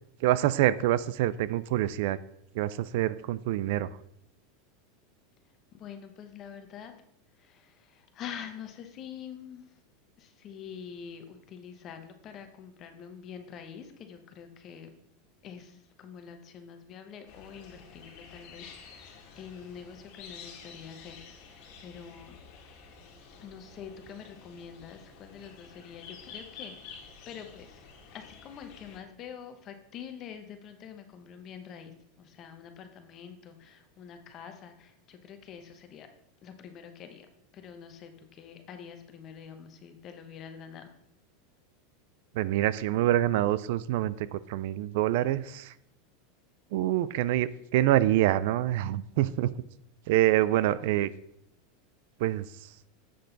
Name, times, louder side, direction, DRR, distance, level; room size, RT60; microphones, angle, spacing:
voice 1, 0.2-2.2 2.5-3.9 42.3-45.7 46.7-49.5 50.1-51.1 52.2-52.5, right 14 dB, 60° right, 17 dB, 0.3 m, -26 dB
voice 2, 5.7-6.9 7.4-9.7 10.2-14.9 15.4-19.1 19.4-22.3 23.4-27.8 28.1-36.1 36.4-37.3 37.5-40.9, left 7 dB, 30° left, 7 dB, 1.0 m, -46 dB
sound 1, 17.3-29.0, left 5 dB, 55° left, 2.1 m, -50 dB
7.7 x 6.4 x 4.0 m, 0.75 s
supercardioid pair, 155°, 0 cm